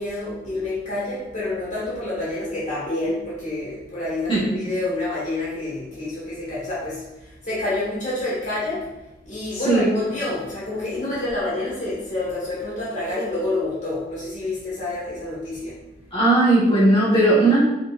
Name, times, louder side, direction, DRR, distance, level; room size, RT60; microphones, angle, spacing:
voice 1, 0.0-9.0 9.2-15.8, left 2 dB, 45° left, -8 dB, 1.6 m, -28 dB
voice 2, 16.1-17.6, right 2 dB, 30° left, -9 dB, 1.6 m, -17 dB
4.8 x 4.2 x 2.5 m, 0.97 s
head